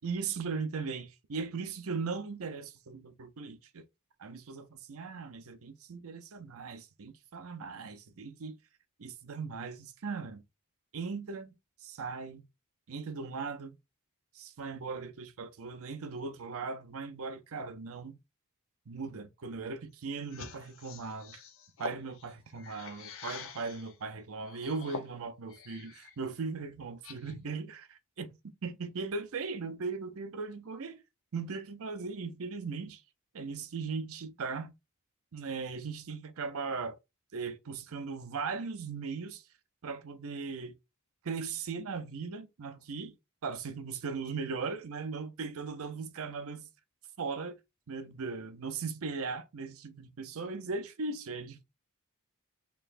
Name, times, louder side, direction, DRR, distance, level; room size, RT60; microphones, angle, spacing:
voice 1, 0.0-3.9 4.2-8.5 9.0-10.4 10.9-11.6 11.8-12.4 12.9-13.8 14.3-18.2 18.9-21.4 21.8-28.3 28.6-31.0 31.3-33.0 33.3-34.7 35.3-37.0 37.3-39.4 39.8-40.7 41.2-43.1 43.4-46.7 47.2-47.6 47.9-51.6, right 4 dB, 65° right, 0.6 m, -38 dB
sound 1, 20.2-23.9 24.5-26.1 26.5-27.5, left 5 dB, 65° left, 0.7 m, -46 dB
4.4 x 3.1 x 2.5 m
head